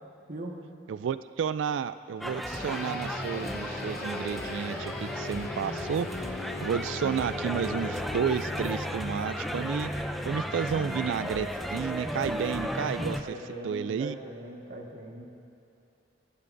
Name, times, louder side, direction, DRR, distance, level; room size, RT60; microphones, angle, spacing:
voice 1, 0.9-6.1 6.6-9.9 10.2-13.3 13.6-14.2, right 7 dB, 70° right, 13 dB, 0.3 m, -31 dB
sound 1, 2.2-13.2, equal, ahead, 0.4 m, -34 dB
sound 2, 2.5-12.2, left 3 dB, 50° left, 0.9 m, -40 dB
voice 2, 13.2-15.2, right 1 dB, 50° right, -1 dB, 1.5 m, -40 dB
23.0 x 11.0 x 2.6 m, 2.7 s
head